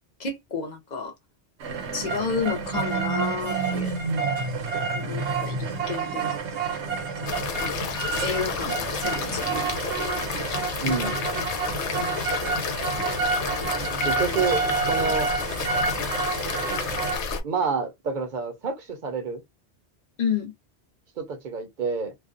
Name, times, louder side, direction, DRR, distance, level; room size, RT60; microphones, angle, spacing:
voice 1, 0.2-1.2 1.9-4.0 4.9-6.8 7.2-7.5 8.2-9.8 10.1-10.3 12.0-12.4 14.3-14.4 20.2-20.5, left 5 dB, 50° left, 0.6 m, -31 dB
sound 1, 1.6-17.2, right 4 dB, 85° right, 1.1 m, -28 dB
sound 2, 7.3-17.4, left 6 dB, 85° left, 0.9 m, -31 dB
voice 2, 10.8-11.1 14.0-14.6 14.9-15.3 17.4-19.4 21.2-22.1, right 4 dB, 55° right, 0.7 m, -28 dB
2.4 x 2.1 x 2.4 m
omnidirectional pair, 1.1 m